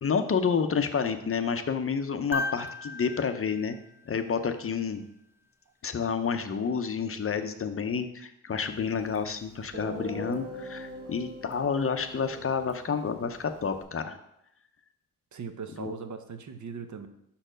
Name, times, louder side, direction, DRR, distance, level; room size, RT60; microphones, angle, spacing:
voice 1, 0.0-3.7 4.1-5.0 5.8-14.2 15.8-15.9, left 6 dB, 40° left, 8 dB, 0.6 m, -29 dB
sound 1, 2.3-4.6 6.7-6.8, left 2 dB, 5° right, 0.4 m, -37 dB
Guitar, 9.1-9.2 9.7-13.8, equal, 40° right, 1.8 m, -42 dB
voice 2, 15.3-17.1, right 6 dB, 55° right, 8 dB, 0.7 m, -39 dB
5.6 x 4.5 x 5.0 m, 0.78 s
cardioid pair, 75°, 35 cm